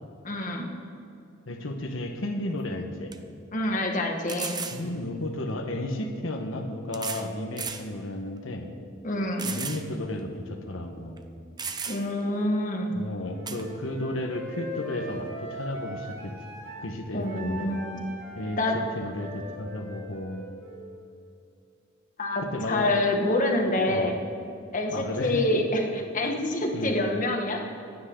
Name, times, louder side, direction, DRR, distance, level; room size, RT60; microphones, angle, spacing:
voice 1, 0.2-0.7 3.5-4.6 9.0-9.5 11.9-12.9 17.1-18.0 18.6-18.8 22.2-24.2 24.7-27.9, left 1 dB, 40° left, 2 dB, 1.6 m, -27 dB
voice 2, 1.5-3.1 4.7-8.7 9.4-11.2 12.9-16.3 16.8-17.7 18.4-20.4 22.4-22.9 23.9-24.1 24.9-25.6 26.7-26.9, left 1 dB, 75° left, 3 dB, 1.3 m, -33 dB
sound 1, 2.5-2.6 3.1-3.2 4.3-4.8 6.0-6.1 6.9-7.3 7.6-7.9 8.4-8.5 9.4-9.8 10.2-10.3 11.2-11.3 11.6-12.2 13.5-13.6, right 6 dB, 20° right, 0.7 m, -34 dB
Wind instrument woodwind instrument, 13.3-16.9 17.2-21.0, equal, 85° right, 3.6 m, -40 dB
26.0 x 9.4 x 3.9 m, 2.6 s
head